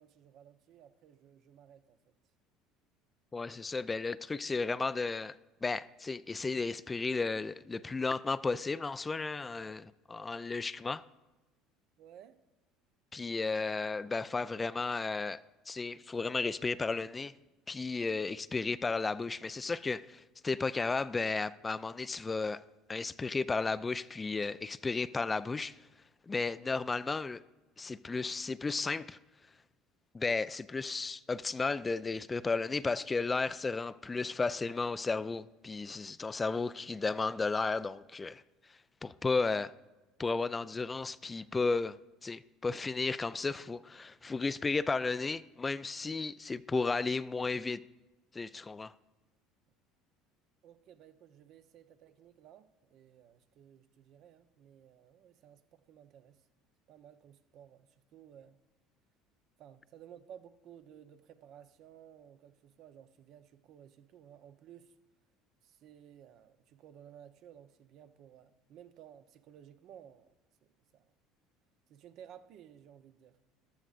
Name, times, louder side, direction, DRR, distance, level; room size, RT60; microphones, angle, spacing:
voice 1, 0.0-2.1 12.0-12.4 50.6-56.4 56.9-58.6 59.6-64.9 65.6-70.3 70.9-71.1 71.9-73.4, right 9 dB, 60° right, 0.7 m, -56 dB
voice 2, 3.3-5.3 5.6-11.0 13.1-15.4 15.7-17.3 17.7-22.6 22.9-25.7 26.3-27.4 27.8-29.2 30.1-38.4 39.0-39.7 40.2-47.8 48.3-48.9, left 4 dB, 20° left, 0.3 m, -34 dB
14.0 x 12.5 x 2.5 m
hypercardioid pair, 70°, 0 cm